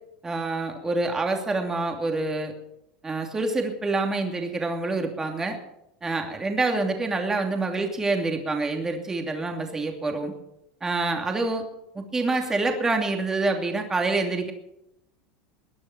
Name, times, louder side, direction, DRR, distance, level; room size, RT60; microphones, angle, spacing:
voice 1, 0.2-2.5 3.0-5.6 6.0-10.3 10.8-11.6 11.9-14.5, right 3 dB, 15° right, 3 dB, 2.7 m, -26 dB
21.0 x 10.5 x 6.1 m, 0.82 s
supercardioid pair, 145°, 4 cm